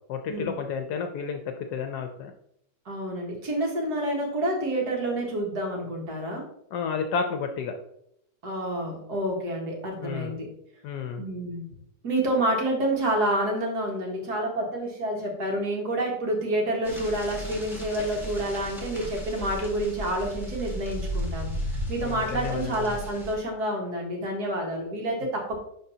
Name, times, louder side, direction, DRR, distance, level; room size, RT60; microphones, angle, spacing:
voice 1, 0.1-2.3 6.7-7.7 10.0-10.3 10.8-11.2 22.0-22.9, left 6 dB, 75° left, 6 dB, 1.1 m, -31 dB
voice 2, 2.9-6.4 8.4-10.5 11.2-11.7 12.0-25.6, right 1 dB, 65° right, 0 dB, 2.0 m, -28 dB
sound 1, 16.8-23.3, equal, ahead, 1.8 m, -35 dB
11.0 x 3.9 x 2.7 m, 0.76 s
omnidirectional pair, 1.9 m